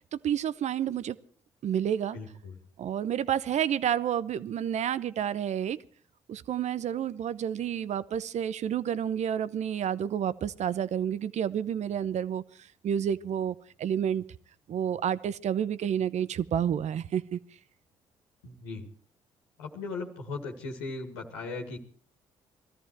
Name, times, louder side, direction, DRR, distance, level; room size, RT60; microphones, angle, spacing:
voice 1, 0.1-1.2 1.6-2.2 2.8-5.8 6.3-12.4 12.8-14.2 14.7-17.4, right 9 dB, 60° right, 17 dB, 0.9 m, -29 dB
voice 2, 2.1-2.6 18.4-18.8 19.6-21.8, left 3 dB, 90° left, 1 dB, 2.2 m, -38 dB
20.5 x 14.0 x 4.7 m, 0.44 s
hypercardioid pair, 50°, 13 cm